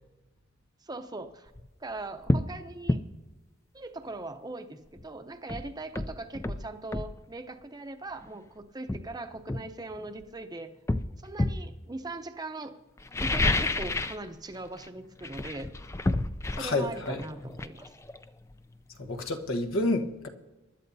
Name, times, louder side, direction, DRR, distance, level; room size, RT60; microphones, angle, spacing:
voice 1, 0.8-1.5 1.8-3.0 3.7-10.7 11.2-12.7 13.2-15.7 16.6-17.9, right 2 dB, 20° right, 0.7 m, -40 dB
sound 1, 1.5-1.7 2.3-2.5 2.9-3.1 5.0-5.1 5.5-7.2 8.2-8.4 8.9-10.3 10.9-11.7 13.0-14.3 14.5-14.9 15.2-18.8 19.1-19.2, left 2 dB, 15° left, 0.4 m, -30 dB
voice 2, 16.6-17.2 19.0-20.3, left 2 dB, 85° left, 1.3 m, -29 dB
24.5 x 12.0 x 2.7 m
head